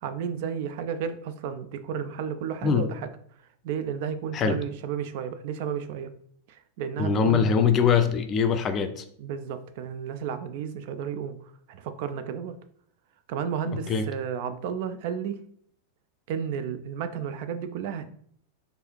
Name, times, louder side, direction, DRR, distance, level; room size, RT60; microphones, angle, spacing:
voice 1, 0.0-3.1 3.6-6.1 6.5-7.8 9.2-12.6 13.3-15.4 16.3-18.1, right 7 dB, 50° right, 11 dB, 0.3 m, -32 dB
voice 2, 7.0-9.0 13.7-14.1, left 6 dB, 30° left, 8 dB, 0.4 m, -23 dB
4.6 x 2.6 x 3.1 m, 0.64 s
figure-of-eight pair, 90°, 0 cm